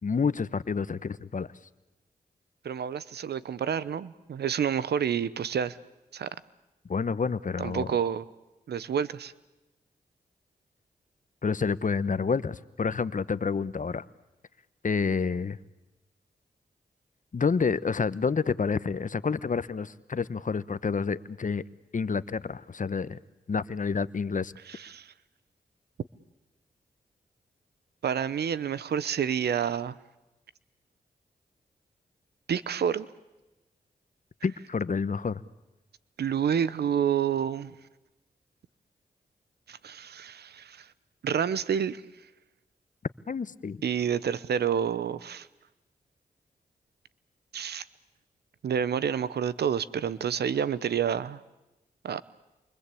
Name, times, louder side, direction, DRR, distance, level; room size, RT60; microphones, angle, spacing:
voice 1, 0.0-1.5 6.9-7.9 11.4-14.0 14.8-15.6 17.3-21.6 21.9-23.2 23.5-24.5 34.4-35.4 43.3-43.8, left 5 dB, 50° left, 16 dB, 1.1 m, -29 dB
voice 2, 2.6-5.8 6.1-6.3 7.6-8.2 8.7-9.3 24.7-25.1 28.0-30.0 32.5-33.1 36.2-37.7 39.7-40.9 41.2-42.0 43.8-45.5 47.5-47.8 48.6-51.4 52.0-52.2, right 8 dB, 80° right, 17 dB, 0.9 m, -29 dB
28.5 x 24.5 x 8.5 m, 1.0 s
supercardioid pair, 40°, 17 cm